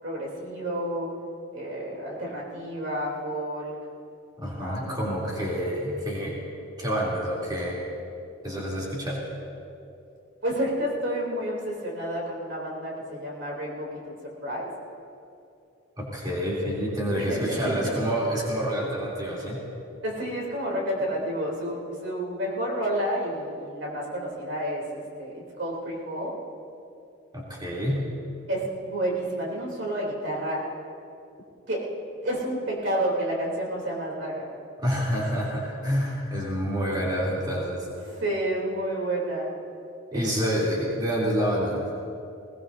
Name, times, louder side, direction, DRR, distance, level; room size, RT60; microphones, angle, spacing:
voice 1, 0.0-1.1 1.5-3.7 4.6-5.1 10.4-14.7 17.2-17.8 20.0-26.3 28.5-30.7 31.7-31.8 32.2-34.5 38.0-39.5 40.1-40.9, right 1 dB, 60° right, -3 dB, 3.2 m, -30 dB
voice 2, 4.4-6.4 6.8-7.8 8.4-9.2 16.0-19.6 27.3-28.1 34.8-37.9 40.1-41.8, equal, 20° right, -5 dB, 3.1 m, -28 dB
21.0 x 18.5 x 2.7 m, 2.6 s
head